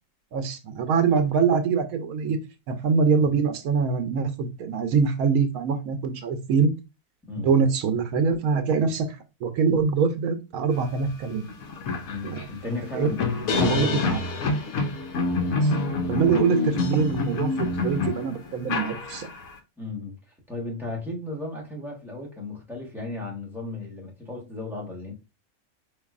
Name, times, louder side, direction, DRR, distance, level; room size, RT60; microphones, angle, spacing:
voice 1, 0.3-2.4 2.7-6.7 7.4-9.1 9.4-11.5 12.2-13.1 13.5-14.2 15.6-15.7 16.1-19.3, right 5 dB, 80° right, 8 dB, 1.1 m, -24 dB
sound 1, 11.1-11.2 11.5-19.5, left 3 dB, 75° left, 1.1 m, -27 dB
voice 2, 12.0-14.1 19.8-25.1, left 3 dB, ahead, -2 dB, 1.0 m, -35 dB
4.7 x 2.6 x 2.4 m, 0.26 s
omnidirectional pair, 1.5 m